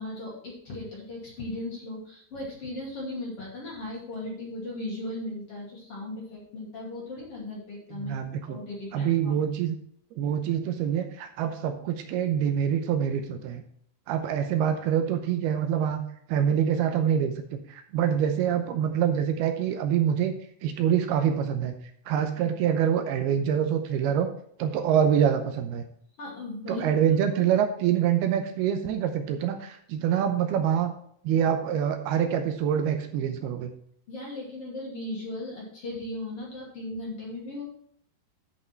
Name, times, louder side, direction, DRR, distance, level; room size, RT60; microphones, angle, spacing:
voice 1, 0.0-9.3 26.2-27.5 34.1-37.6, left 1 dB, 40° left, -3 dB, 2.9 m, -37 dB
voice 2, 7.9-8.6 8.9-9.8 10.2-13.6 14.1-16.0 16.3-20.4 20.6-21.8 22.1-24.3 24.6-25.8 26.7-30.9 31.2-33.7, right 9 dB, 80° right, 6 dB, 2.6 m, -25 dB
11.0 x 5.5 x 4.4 m, 0.65 s
omnidirectional pair, 4.8 m